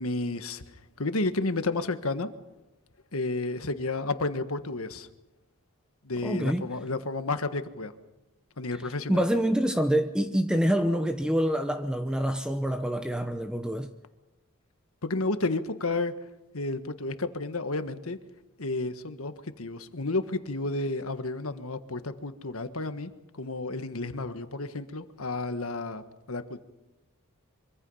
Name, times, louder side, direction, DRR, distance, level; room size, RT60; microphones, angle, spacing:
voice 1, 0.0-2.3 3.1-5.1 6.0-7.9 8.6-9.2 15.0-16.1 16.5-18.2 18.6-26.6, left 2 dB, 80° left, 1.5 m, -31 dB
voice 2, 6.2-6.7 9.1-13.9, equal, 5° right, 0.8 m, -26 dB
25.0 x 24.5 x 5.6 m
head